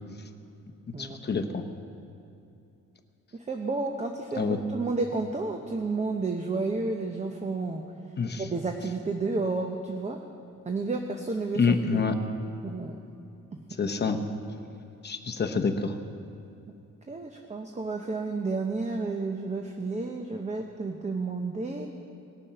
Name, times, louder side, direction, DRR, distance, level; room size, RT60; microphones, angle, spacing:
voice 1, 1.0-1.6 4.4-4.6 8.2-8.5 11.6-12.2 13.8-14.2 15.0-15.9, left 5 dB, 35° left, 6 dB, 0.8 m, -27 dB
voice 2, 3.3-7.8 8.4-10.2 10.6-12.0 12.6-13.0 13.5-13.6 17.1-21.9, right 3 dB, 20° right, 3 dB, 0.7 m, -31 dB
20.0 x 7.0 x 5.7 m, 2.7 s
wide cardioid pair, 140°, 32 cm